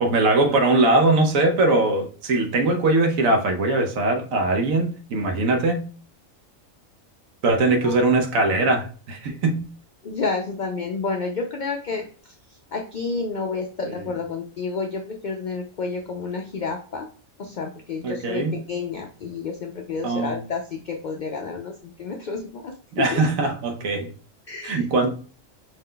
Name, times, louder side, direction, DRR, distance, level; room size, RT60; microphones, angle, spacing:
voice 1, 0.0-5.9 7.4-9.6 13.8-13.9 18.0-18.6 20.0-20.4 23.0-24.1 24.6-25.1, right 2 dB, 80° right, 1.1 m, -21 dB
voice 2, 10.0-12.3 12.7-17.1 17.4-22.8 23.1-23.2 24.5-24.9, left 4 dB, 90° left, 0.4 m, -30 dB
5.4 x 2.2 x 3.7 m
omnidirectional pair, 1.4 m